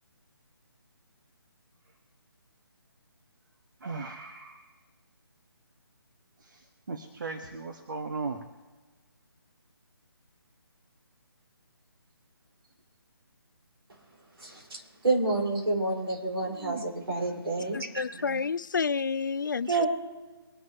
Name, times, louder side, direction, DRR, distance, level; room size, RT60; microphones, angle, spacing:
voice 1, 3.8-4.8 6.4-8.4 16.5-18.4, right 4 dB, 50° right, 1.3 m, -39 dB
voice 2, 14.4-18.1 19.6-19.9, right 3 dB, 70° right, 4.6 m, -29 dB
voice 3, 17.7-19.7, left 5 dB, 50° left, 0.4 m, -29 dB
23.5 x 11.0 x 2.9 m
figure-of-eight pair, 150°, 13 cm